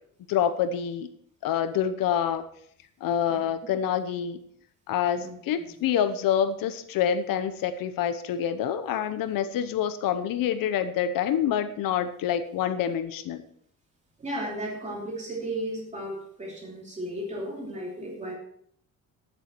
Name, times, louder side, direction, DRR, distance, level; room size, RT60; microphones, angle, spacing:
voice 1, 0.3-1.1 1.4-2.5 3.0-4.4 4.9-13.4, left 9 dB, 90° left, 11 dB, 0.9 m, -27 dB
voice 2, 5.2-5.7 14.2-18.3, right 1 dB, 20° right, -2 dB, 2.9 m, -35 dB
12.5 x 9.0 x 4.5 m, 0.64 s
cardioid pair, 180°, 33 cm